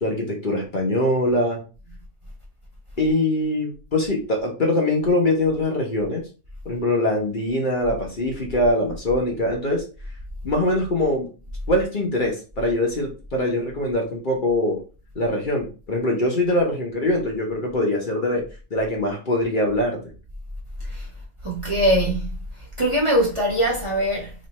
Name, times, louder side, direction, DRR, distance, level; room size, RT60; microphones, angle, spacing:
voice 1, 0.0-1.6 3.0-6.2 6.6-9.8 10.4-11.3 11.7-14.8 15.1-18.5 18.7-20.0, left 1 dB, 45° left, 1.0 m, -23 dB
voice 2, 21.4-22.3 22.8-24.3, equal, 25° right, 1.0 m, -21 dB
3.1 x 2.8 x 4.0 m
omnidirectional pair, 1.3 m